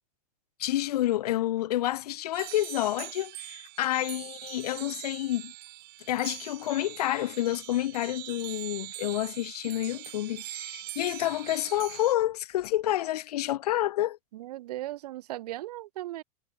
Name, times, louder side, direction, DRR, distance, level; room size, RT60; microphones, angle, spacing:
voice 1, 0.6-5.5 6.1-14.2, left 14 dB, 85° left, 1.0 m, -29 dB
sound 1, 2.3-12.1, right 22 dB, 55° right, 4.5 m, -42 dB
voice 2, 14.3-16.2, right 15 dB, 85° right, 0.4 m, -37 dB
hypercardioid pair, 105°, 19 cm